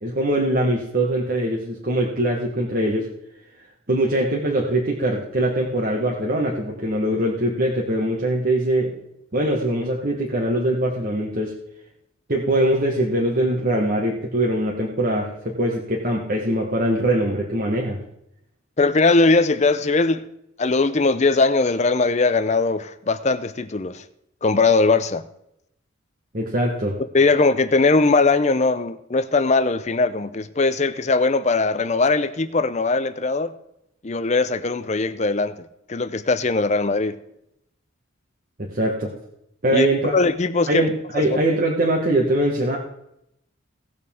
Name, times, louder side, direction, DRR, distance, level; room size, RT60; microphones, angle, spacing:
voice 1, 0.0-3.1 3.9-8.9 9.3-11.5 12.3-18.0 26.3-27.0 38.6-39.1 39.6-40.1 40.7-42.8, right 1 dB, 45° right, 1.3 m, -22 dB
voice 2, 18.8-20.3 20.6-24.0 24.4-25.2 27.1-33.5 34.0-37.2 39.7-40.8 41.1-41.2, left 3 dB, 35° left, 0.5 m, -20 dB
17.5 x 6.8 x 3.6 m
head